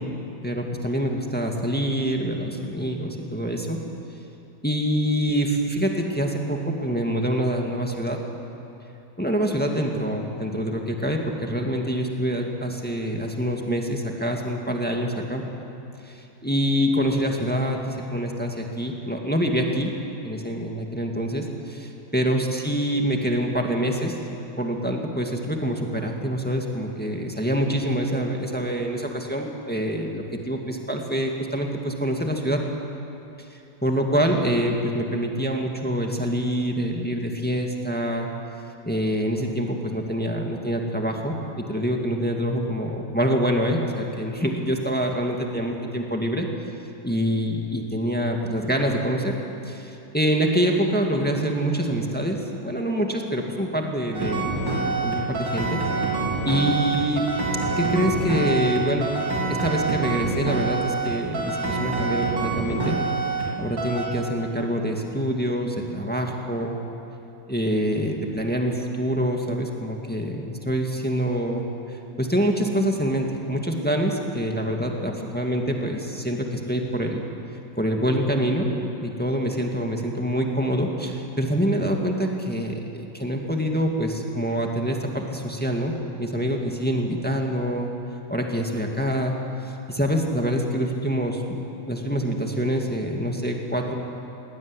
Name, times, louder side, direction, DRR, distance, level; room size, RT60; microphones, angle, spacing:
voice 1, 0.4-3.8 4.6-8.2 9.2-15.4 16.1-19.9 20.2-24.2 24.6-32.6 33.8-38.3 38.9-46.5 47.0-49.3 49.7-54.5 55.0-55.8 56.4-57.3 57.8-59.2 59.5-63.0 63.6-66.8 67.5-71.6 71.9-77.2 77.8-78.7 79.0-87.9 88.3-89.3 89.6-91.4 91.9-93.9, equal, 5° left, 1 dB, 1.9 m, -25 dB
sound 1, 54.1-63.5 63.8-64.0, right 3 dB, 85° right, 4.4 m, -26 dB
20.5 x 17.0 x 9.9 m, 2.8 s
omnidirectional pair, 2.0 m